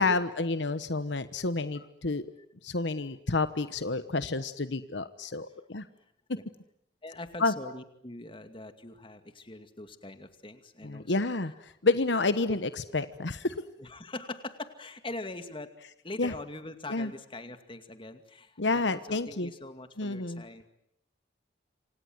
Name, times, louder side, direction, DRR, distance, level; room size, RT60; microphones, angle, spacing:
voice 1, 0.0-2.3 2.6-5.9 7.4-7.5 10.8-11.5 11.8-13.6 16.2-16.3 16.9-17.1 18.6-19.5 20.0-20.4, left 3 dB, 70° left, 12 dB, 1.2 m, -29 dB
voice 2, 7.0-11.3 13.8-15.7 16.0-20.7, left 2 dB, 30° left, 9 dB, 2.3 m, -42 dB
27.5 x 26.5 x 7.9 m, 0.76 s
head